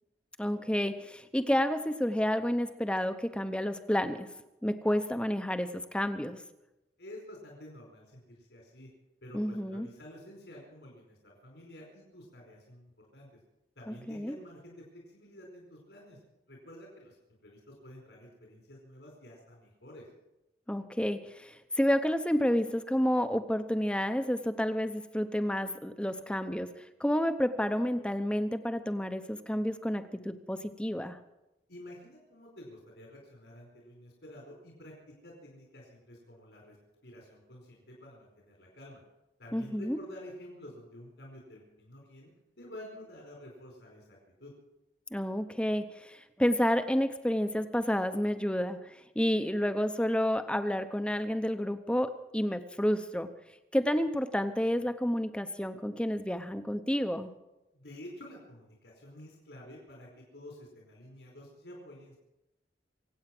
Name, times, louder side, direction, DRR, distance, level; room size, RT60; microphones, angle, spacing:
voice 1, 0.4-4.3 4.6-6.4 9.3-9.9 13.9-14.4 20.7-26.7 27.0-31.2 39.5-40.0 45.1-53.3 53.7-57.3, equal, 5° left, 10 dB, 0.7 m, -30 dB
voice 2, 7.0-8.9 9.2-13.3 13.8-16.2 16.5-17.2 17.4-20.1 31.7-36.8 37.0-39.0 39.4-44.5 57.7-62.2, left 1 dB, 80° left, -2 dB, 4.6 m, -50 dB
25.5 x 8.8 x 6.0 m, 0.95 s
head